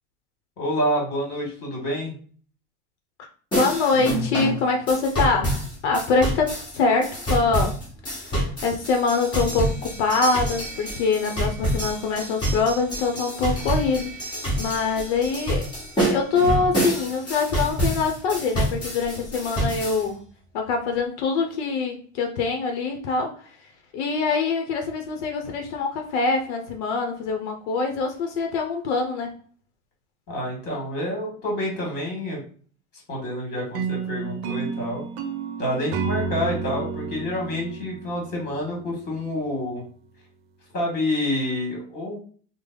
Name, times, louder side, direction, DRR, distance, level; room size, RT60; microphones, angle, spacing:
voice 1, 0.6-2.1 30.3-32.4 33.1-35.0 35.6-39.8 40.7-42.2, left 1 dB, 30° left, 0 dB, 1.5 m, -28 dB
voice 2, 3.5-7.8 8.2-8.3 8.6-15.7 16.0-20.2 20.5-23.5 23.9-29.3, left 4 dB, 75° left, 3 dB, 0.7 m, -24 dB
sound 1, 3.5-20.0, right 1 dB, 15° left, 1.2 m, -27 dB
sound 2, 33.7-38.9, right 5 dB, 65° right, 0.6 m, -31 dB
3.3 x 2.0 x 3.7 m, 0.43 s
supercardioid pair, 160°, 34 cm